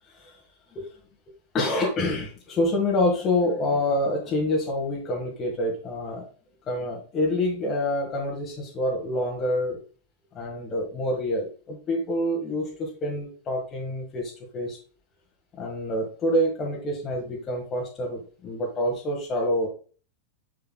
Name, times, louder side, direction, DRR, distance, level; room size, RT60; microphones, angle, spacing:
voice 1, 1.5-6.3 6.7-9.8 10.3-14.8 15.5-19.7, left 1 dB, 25° left, -2 dB, 1.6 m, -27 dB
7.0 x 6.7 x 2.3 m, 0.38 s
figure-of-eight pair, 90°, 0 cm